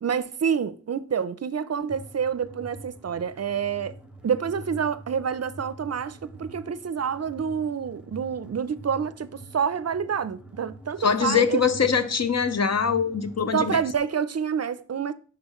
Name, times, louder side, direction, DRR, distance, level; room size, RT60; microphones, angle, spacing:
voice 1, 0.0-3.9 4.2-11.6 13.5-15.1, right 7 dB, 55° right, 0.5 m, -28 dB
sound 1, 1.9-14.0, right 1 dB, 5° right, 1.0 m, -45 dB
voice 2, 11.0-13.8, left 6 dB, 55° left, 0.7 m, -23 dB
11.0 x 3.9 x 3.0 m
cardioid pair, 50°, 31 cm